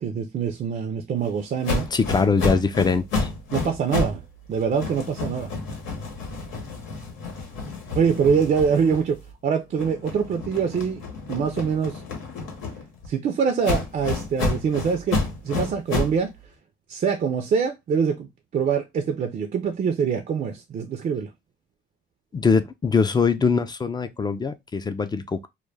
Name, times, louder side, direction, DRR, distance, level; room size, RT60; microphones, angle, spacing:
voice 1, 0.0-1.9 3.5-4.2 4.5-5.5 7.9-11.0 11.3-12.0 13.1-16.3 16.9-21.3, right 6 dB, 45° right, 0.4 m, -24 dB
sound 1, 1.6-4.2 4.5-9.3 9.7-13.1 13.6-16.2, left 3 dB, 85° left, 0.9 m, -30 dB
voice 2, 1.9-3.3 22.3-25.5, left 5 dB, 20° left, 0.3 m, -22 dB
2.3 x 2.1 x 3.1 m
cardioid pair, 90°, 20 cm